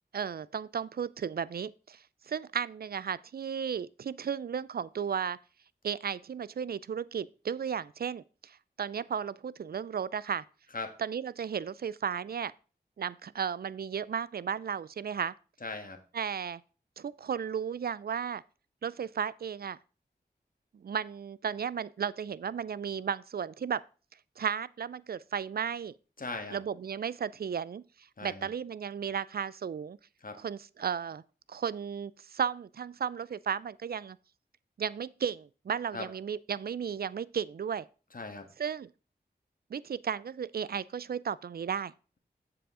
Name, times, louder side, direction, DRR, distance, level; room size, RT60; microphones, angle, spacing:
voice 1, 0.1-5.4 5.8-10.4 11.0-12.5 13.0-15.3 16.1-16.6 17.0-18.4 18.8-19.8 20.7-23.8 24.4-25.9 26.5-30.0 30.4-31.2 31.5-34.2 34.8-37.9 38.6-38.9 39.7-41.9, right 7 dB, 60° right, 0.4 m, -34 dB
voice 2, 15.6-16.0 26.2-26.6 28.2-28.5 30.2-30.4 35.9-36.1 38.1-38.5, left 3 dB, 55° left, 1.6 m, -39 dB
7.6 x 7.0 x 3.7 m
wide cardioid pair, 55°, 17 cm